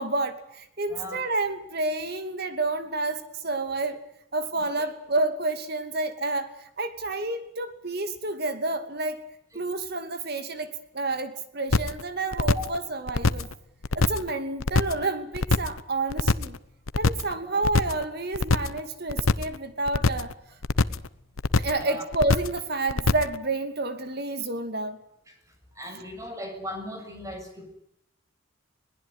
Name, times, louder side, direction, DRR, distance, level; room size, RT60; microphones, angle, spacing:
voice 1, 0.0-4.0 4.3-9.2 9.5-13.5 13.9-16.6 17.0-20.3 21.6-25.0, right 2 dB, 50° right, 9 dB, 2.6 m, -29 dB
voice 2, 0.9-1.2 4.5-4.6 12.5-12.7 17.4-17.6 21.8-22.0 25.3-25.4 25.7-27.7, left 1 dB, 15° right, 5 dB, 6.7 m, -38 dB
sound 1, 11.7-12.0 12.3-12.8 13.1-13.5 13.8-14.3 14.6-15.0 15.3-15.8 16.1-16.6 16.9-17.3 17.6-18.0 18.3-18.8 19.1-19.6 19.9-20.3 20.6-21.1 21.4-21.8 22.1-22.6 22.9-23.4, left 3 dB, 85° left, 1.0 m, -23 dB
22.0 x 20.0 x 9.6 m, 0.74 s
head